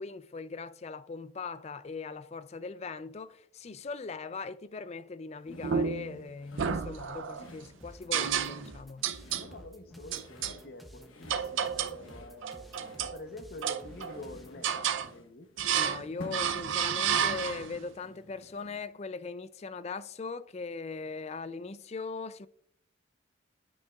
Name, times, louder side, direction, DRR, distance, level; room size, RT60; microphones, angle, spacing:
voice 1, 0.0-9.1 15.7-22.5, left 4 dB, 30° left, 0.3 m, -40 dB
sound 1, 5.4-18.9, left 2 dB, 85° left, 1.1 m, -52 dB
sound 2, 5.6-6.2 6.6-7.5 8.1-8.8 9.0-9.5 10.1-10.6 11.3-12.0 12.4-13.2 13.6-14.2 14.6-15.1 15.6-16.0 16.3-17.8, right 7 dB, 75° right, 0.5 m, -31 dB
sound 3, 7.8-14.6, equal, ahead, 0.7 m, -53 dB
voice 2, 9.4-15.5, left 2 dB, 50° left, 0.8 m, -47 dB
13.0 x 5.4 x 2.3 m
head